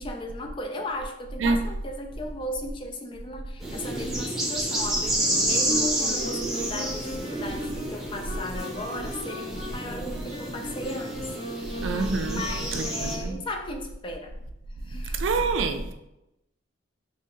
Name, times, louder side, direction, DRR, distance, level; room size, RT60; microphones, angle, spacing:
voice 1, 0.0-12.0 12.3-14.3 14.8-15.2, left 1 dB, 25° left, 4 dB, 0.3 m, -36 dB
sound 1, 3.6-13.2, right 1 dB, ahead, 0.7 m, -30 dB
sound 2, 5.1-13.6, left 1 dB, 70° left, 1.3 m, -39 dB
voice 2, 11.8-12.4 12.7-13.4 15.2-15.9, right 3 dB, 65° right, 7 dB, 0.4 m, -26 dB
2.9 x 2.7 x 3.7 m, 0.88 s
head